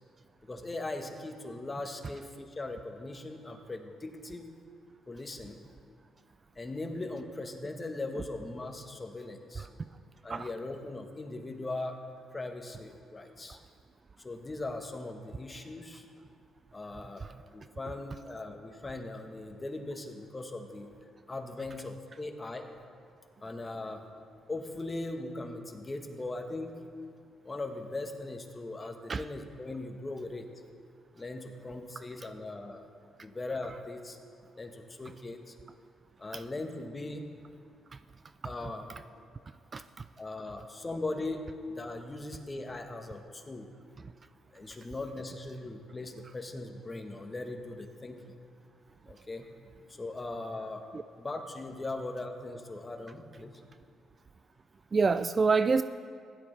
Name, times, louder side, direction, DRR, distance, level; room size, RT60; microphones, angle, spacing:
voice 1, 0.4-4.5 5.1-5.6 6.6-9.7 10.2-12.0 12.3-13.6 14.2-16.0 16.7-20.9 21.3-22.6 23.4-24.0 24.5-26.8 27.4-30.5 31.1-32.8 33.2-34.2 34.6-35.5 36.2-37.3 38.4-38.9 40.2-41.5 41.7-43.7 44.5-48.2 49.1-49.5 49.9-50.8 51.2-53.6, left 2 dB, 25° left, 4 dB, 1.3 m, -39 dB
voice 2, 9.6-9.9 10.3-10.5 13.5-13.6 17.2-17.4 29.1-29.2 36.3-36.4 37.9-38.0 39.7-40.1 50.9-51.0 54.9-55.8, right 4 dB, 35° right, 12 dB, 0.3 m, -28 dB
16.0 x 11.0 x 3.4 m, 2.2 s
cardioid pair, 90°, 0 cm